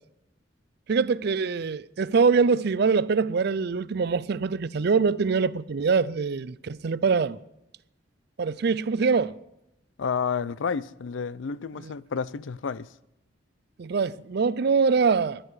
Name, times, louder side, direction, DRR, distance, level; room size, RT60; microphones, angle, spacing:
voice 1, 0.9-7.4 8.4-9.4 11.8-11.9 13.8-15.4, right 5 dB, 60° right, 0.4 m, -24 dB
voice 2, 10.0-12.9, left 6 dB, 80° left, 0.5 m, -30 dB
21.0 x 10.0 x 4.8 m
head